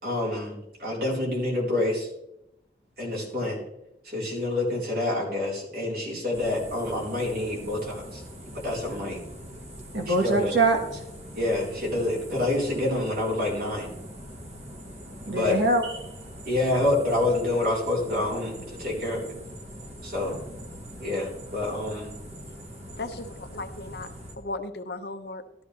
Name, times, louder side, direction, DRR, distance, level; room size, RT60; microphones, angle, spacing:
voice 1, 0.0-2.1 3.0-3.6 4.1-8.2 8.5-9.2 10.1-10.5 11.3-13.9 15.3-15.6 16.5-18.5 18.8-19.3 20.0-20.4 21.0-22.1, left 2 dB, 55° right, -3 dB, 4.3 m, -27 dB
sound 1, 6.3-24.4, equal, 40° right, 1.8 m, -42 dB
voice 2, 9.9-11.0 15.3-16.0 20.2-20.6, right 2 dB, 75° right, 2 dB, 1.6 m, -24 dB
voice 3, 23.0-24.1 24.4-25.4, left 2 dB, 65° left, 8 dB, 0.9 m, -36 dB
13.0 x 12.5 x 3.4 m, 0.85 s
head